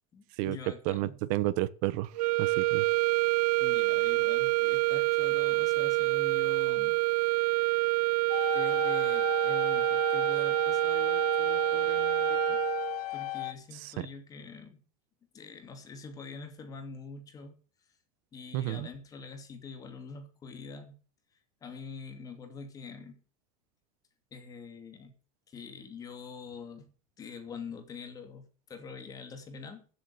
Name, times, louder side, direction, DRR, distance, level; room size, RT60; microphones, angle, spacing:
voice 1, 0.1-1.2 3.6-7.0 8.5-12.6 13.1-14.8 15.3-17.5 18.3-21.0 21.6-23.2 24.3-25.1 25.5-26.9 27.2-29.9, left 4 dB, 20° left, 2.5 m, -45 dB
voice 2, 0.9-2.1 2.4-2.8 13.8-13.9 18.5-18.9, right 16 dB, 45° right, 1.1 m, -31 dB
sound 1, 2.1-13.0, right 19 dB, 85° right, 0.6 m, -27 dB
sound 2, 8.3-13.5, left 17 dB, 80° left, 1.2 m, -35 dB
14.5 x 7.8 x 6.6 m
supercardioid pair, 170°, 19 cm